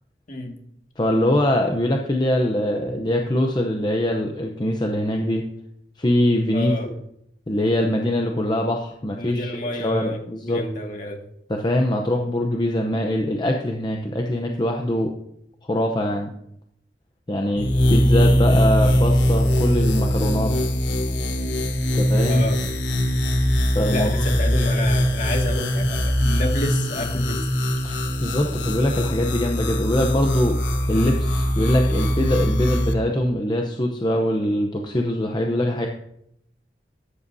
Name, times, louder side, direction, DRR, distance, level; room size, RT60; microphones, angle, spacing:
voice 1, 1.0-5.4 6.0-7.0 7.5-10.6 11.5-15.1 15.7-16.3 17.3-20.5 21.9-22.4 23.7-24.1 27.8-30.6 30.9-35.9, left 1 dB, 25° left, 2 dB, 0.7 m, -23 dB
voice 2, 6.5-6.9 9.2-10.2 10.5-11.2 22.2-22.6 23.9-27.4, left 1 dB, 45° left, 1 dB, 2.0 m, -29 dB
sound 1, 17.6-32.9, equal, 80° left, 1.2 m, -21 dB
13.5 x 9.8 x 2.7 m, 0.74 s
head